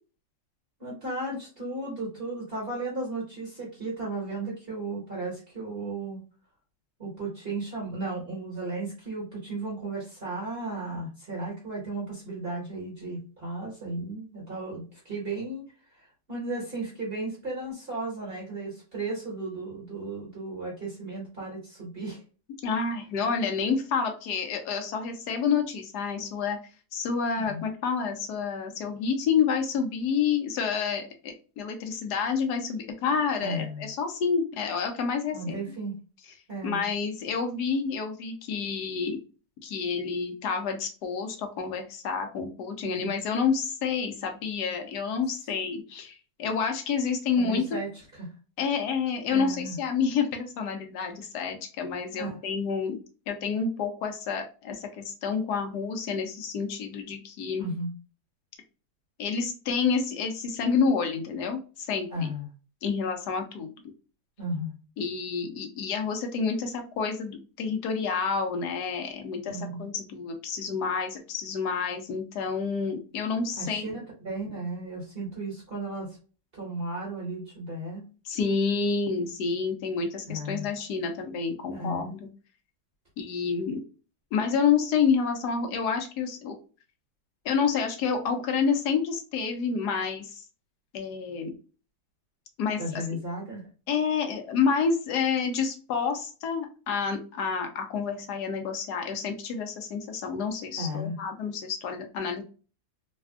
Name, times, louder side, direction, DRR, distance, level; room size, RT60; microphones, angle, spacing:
voice 1, 0.8-6.2 7.0-22.2 27.4-27.6 33.4-33.9 35.3-36.0 36.5-36.9 42.8-43.1 47.4-48.3 49.3-49.8 52.2-52.4 57.6-57.9 62.1-62.5 64.4-64.8 69.5-69.8 73.6-76.2 76.5-78.0 80.3-80.7 81.7-82.1 92.8-93.6 100.8-101.2, right 2 dB, 35° right, -5 dB, 1.2 m, -35 dB
voice 2, 22.6-26.6 26.9-35.6 36.6-39.2 39.6-47.6 48.6-53.0 53.3-57.7 59.2-62.1 62.8-63.7 65.0-73.9 78.2-82.3 83.2-83.8 84.3-86.6 87.4-90.4 90.9-91.5 92.6-93.2 93.9-102.4, left 5 dB, 70° left, 5 dB, 1.1 m, -29 dB
3.4 x 2.3 x 2.3 m, 0.35 s
omnidirectional pair, 2.1 m